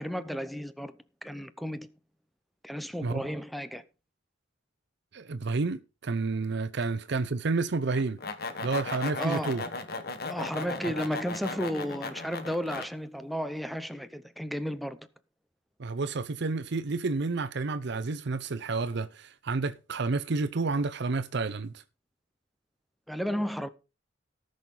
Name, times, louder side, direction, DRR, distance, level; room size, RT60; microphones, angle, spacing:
voice 1, 0.0-1.9 2.6-3.8 9.2-9.7 10.3-15.1 23.1-23.7, equal, ahead, 0.7 m, -33 dB
voice 2, 5.1-8.2 8.6-9.6 15.8-21.8, right 3 dB, 60° right, 0.6 m, -30 dB
sound 1, 7.9-12.9, left 3 dB, 55° left, 1.3 m, -36 dB
18.0 x 6.4 x 3.8 m
head